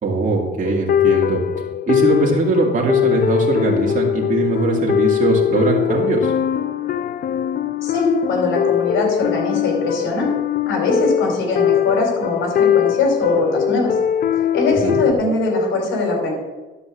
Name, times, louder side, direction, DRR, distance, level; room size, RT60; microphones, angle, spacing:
voice 1, 0.0-1.4 1.9-6.3 14.8-15.0, right 3 dB, 40° right, -2 dB, 2.4 m, -20 dB
sound 1, 0.7-15.1, left 10 dB, 50° left, 0.5 m, -21 dB
voice 2, 7.8-10.3 10.6-14.0 14.3-16.3, left 3 dB, 85° left, 1 dB, 4.3 m, -21 dB
11.5 x 5.2 x 7.4 m, 1.2 s
cardioid pair, 90°, 20 cm